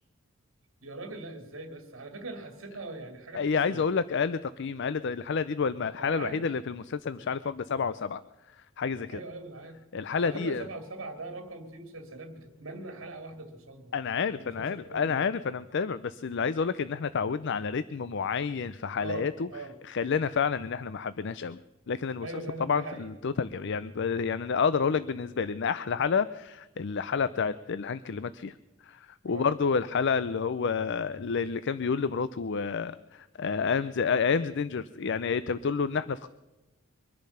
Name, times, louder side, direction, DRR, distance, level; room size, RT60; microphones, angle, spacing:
voice 1, 0.8-3.8 6.0-6.5 7.1-7.3 9.1-9.8 10.2-13.9 14.4-15.2 19.0-19.8 22.2-23.1 29.3-29.5, right 2 dB, 65° right, 6 dB, 2.2 m, -41 dB
voice 2, 3.3-8.2 8.8-9.2 9.9-10.7 13.9-19.5 19.8-21.6 21.9-22.3 22.6-28.5 28.8-36.3, left 5 dB, 55° left, 14 dB, 0.5 m, -29 dB
23.5 x 10.5 x 5.6 m, 1.1 s
head